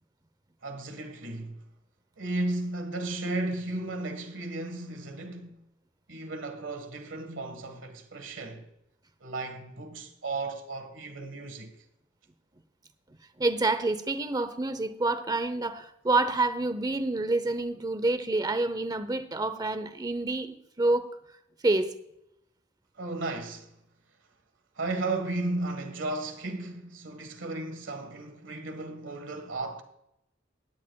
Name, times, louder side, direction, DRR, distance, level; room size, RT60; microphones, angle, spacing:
voice 1, 0.6-1.6 2.2-5.6 6.1-8.7 9.2-11.7 23.0-23.8 24.7-29.8, right 2 dB, 75° right, 1.5 m, -34 dB
voice 2, 13.4-21.1 21.6-21.9, right 2 dB, 20° right, 0.8 m, -28 dB
17.5 x 10.5 x 2.3 m
head